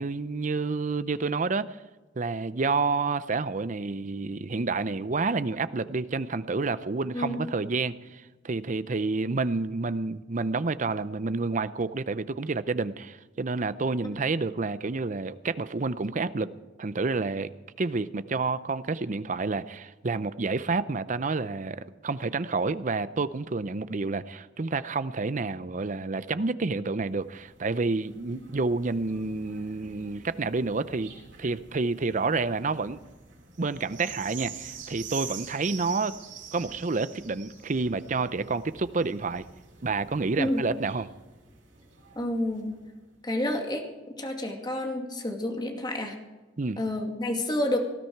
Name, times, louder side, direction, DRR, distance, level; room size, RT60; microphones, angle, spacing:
voice 1, 0.0-1.8 2.2-16.5 16.8-17.5 17.8-31.1 31.4-33.0 33.6-36.1 36.5-39.4 39.8-41.1 46.6-46.8, right 3 dB, 40° right, 15 dB, 0.6 m, -29 dB
sound 1, 27.1-42.9 43.5-43.6, right 6 dB, 85° right, 5.4 m, -46 dB
voice 2, 42.2-42.7 43.2-43.8 44.2-46.1 46.8-47.8, left 1 dB, 25° left, 2 dB, 2.3 m, -29 dB
19.0 x 13.5 x 4.7 m, 1.2 s
head